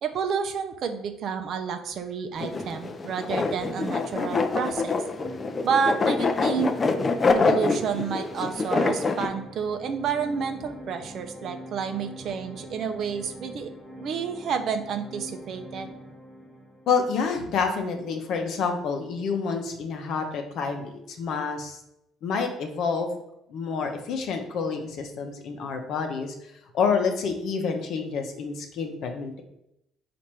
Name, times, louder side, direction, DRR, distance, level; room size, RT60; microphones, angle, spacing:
voice 1, 0.0-5.0 5.6-6.7 7.3-13.7 14.0-15.9, right 6 dB, 60° right, 7 dB, 0.5 m, -30 dB
sound 1, 2.4-9.3, left 3 dB, 30° left, 0.4 m, -25 dB
sound 2, 5.1-17.1, equal, 15° left, 1.0 m, -43 dB
voice 2, 16.9-21.8 22.2-23.1 23.5-29.4, left 5 dB, 70° left, 4 dB, 0.7 m, -28 dB
4.2 x 2.6 x 4.5 m, 0.81 s
cardioid pair, 90°, 0 cm